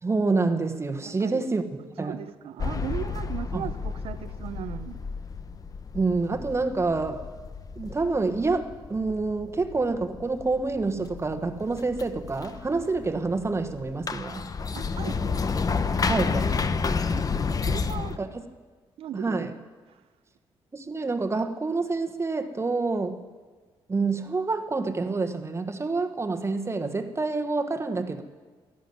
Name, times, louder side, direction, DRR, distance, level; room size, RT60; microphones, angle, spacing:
voice 1, 0.0-1.6 2.0-2.2 3.5-3.7 5.9-7.3 7.7-14.4 16.1-16.5 18.2-18.4 19.1-19.5 20.7-23.2 23.9-28.2, right 3 dB, 30° right, 1.3 m, -27 dB
voice 2, 1.0-1.4 2.0-5.0 14.7-15.4 17.1-18.3 19.0-19.5 19.9-20.0, right 10 dB, 80° right, 0.7 m, -38 dB
sound 1, 2.6-18.2, left 5 dB, 40° left, 0.8 m, -31 dB
12.5 x 11.0 x 9.6 m
cardioid pair, 75°, 10 cm